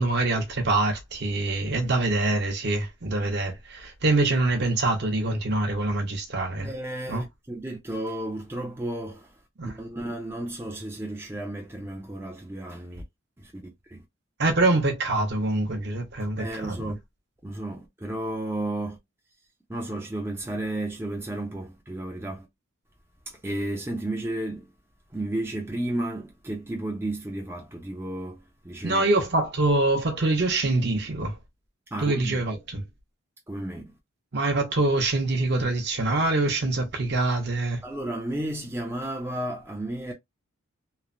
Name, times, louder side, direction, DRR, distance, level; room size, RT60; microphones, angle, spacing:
voice 1, 0.0-6.7 7.1-7.2 9.6-9.7 14.4-16.9 28.8-31.4 32.0-32.8 34.3-37.8, right 2 dB, 50° right, 0.7 m, -25 dB
voice 2, 6.6-9.4 9.6-13.0 13.4-14.0 16.4-17.0 17.4-19.0 19.7-22.5 23.3-24.7 25.1-29.1 31.9-32.4 33.5-33.8 37.8-40.1, right 1 dB, 10° right, 0.4 m, -33 dB
3.0 x 2.0 x 2.4 m
head